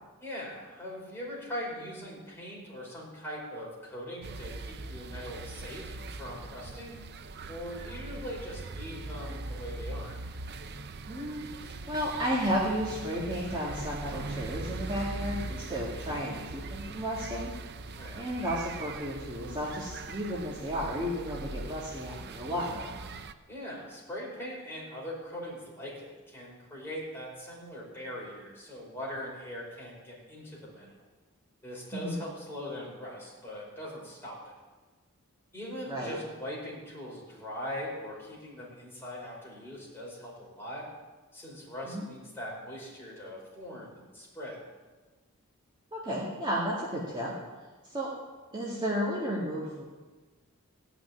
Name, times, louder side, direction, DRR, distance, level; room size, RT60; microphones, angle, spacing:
voice 1, 0.2-7.0 7.5-10.2 17.9-18.2 23.5-30.9 31.6-34.4 35.5-40.9 41.3-44.6, equal, 10° left, -5 dB, 4.8 m, -41 dB
sound 1, 4.2-23.3, right 3 dB, 45° right, 0.6 m, -41 dB
voice 2, 11.1-17.5 18.1-22.9 31.9-32.2 35.9-36.2 41.8-42.0 45.9-47.3 47.8-48.1 48.5-49.8, equal, 20° right, -6 dB, 2.2 m, -33 dB
16.5 x 6.0 x 9.7 m, 1.3 s
head